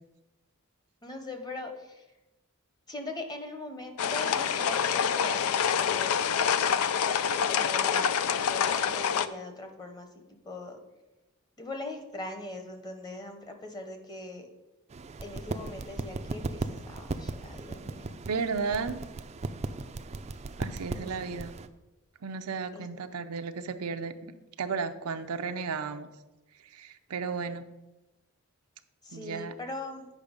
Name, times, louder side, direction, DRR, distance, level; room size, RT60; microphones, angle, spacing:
voice 1, 1.0-2.1 2.9-5.5 5.8-10.8 11.6-14.5 15.2-18.1 21.0-21.4 22.7-22.9 29.0-30.1, left 2 dB, 20° left, 5 dB, 1.0 m, -41 dB
sound 1, 4.0-9.3, left 7 dB, 85° left, 0.4 m, -26 dB
sound 2, 14.9-21.7, right 3 dB, 30° right, 0.4 m, -37 dB
voice 2, 18.3-19.0 20.6-21.5 22.2-26.1 26.7-27.7 29.1-29.5, right 5 dB, 90° right, 9 dB, 0.6 m, -34 dB
8.4 x 5.6 x 5.2 m, 1.0 s
head